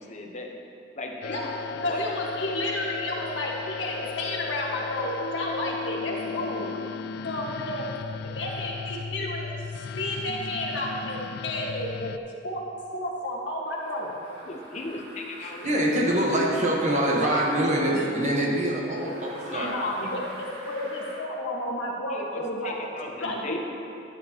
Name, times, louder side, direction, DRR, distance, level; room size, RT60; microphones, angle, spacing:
voice 1, 0.0-0.5 1.0-2.0 14.4-15.8 19.4-20.2 22.1-23.6, left 2 dB, 40° left, 1 dB, 1.0 m, -38 dB
sound 1, 1.2-12.2, left 5 dB, 60° left, 0.3 m, -36 dB
voice 2, 1.8-6.7 7.2-7.9 8.4-12.2 12.4-12.7 12.9-14.1 19.5-20.2 20.6-22.8 23.2-23.6, left 1 dB, 85° left, -3 dB, 1.7 m, -31 dB
sound 2, 13.7-18.3 18.9-21.3, right 1 dB, 65° right, 2.2 m, -46 dB
voice 3, 15.6-19.7, right 1 dB, 40° right, -2 dB, 1.2 m, -24 dB
12.0 x 9.8 x 3.0 m, 2.7 s
head